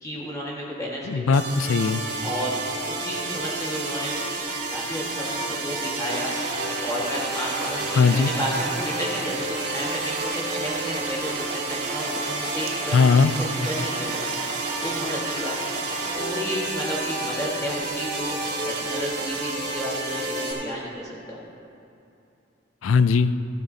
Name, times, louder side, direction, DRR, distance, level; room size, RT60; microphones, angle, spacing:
voice 1, 0.0-1.4 2.2-2.6 2.9-4.2 4.7-9.4 9.7-14.3 14.5-21.5, equal, 15° left, -6 dB, 1.6 m, -32 dB
voice 2, 1.1-2.0 7.9-8.3 12.9-13.3 22.8-23.3, left 5 dB, 80° left, 13 dB, 0.4 m, -19 dB
sound 1, 1.3-20.5, right 2 dB, 55° right, 2.7 m, -30 dB
sound 2, 6.1-16.2, right 4 dB, 35° right, 0.6 m, -36 dB
15.0 x 11.5 x 2.8 m, 2.7 s
head